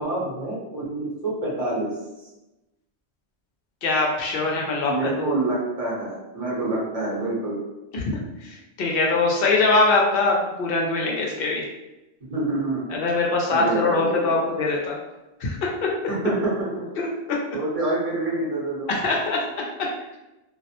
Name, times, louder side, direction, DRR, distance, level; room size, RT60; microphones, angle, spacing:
voice 1, 0.0-1.9 4.8-7.6 12.3-12.8 13.5-14.5 16.1-16.9 17.5-18.9, right 2 dB, 35° right, -6 dB, 0.8 m, -27 dB
voice 2, 3.8-5.3 7.9-11.7 12.9-15.0 15.4-15.9 17.0-17.4 18.9-20.2, left 3 dB, 65° left, -1 dB, 0.7 m, -23 dB
2.3 x 2.1 x 2.8 m, 0.99 s
omnidirectional pair, 1.1 m